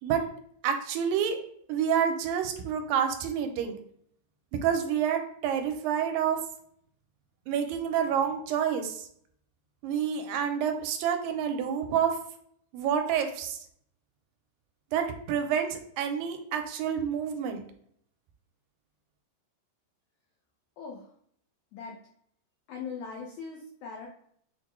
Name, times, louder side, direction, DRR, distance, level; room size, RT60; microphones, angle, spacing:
voice 1, 0.6-1.4 1.7-3.8 4.5-6.4 7.5-9.1 9.8-12.2 12.7-13.6 14.9-17.6, right 8 dB, 85° right, 6 dB, 2.2 m, -28 dB
voice 2, 22.7-24.1, left 5 dB, 85° left, 0 dB, 1.6 m, -40 dB
6.2 x 2.1 x 3.0 m, 0.66 s
omnidirectional pair, 4.0 m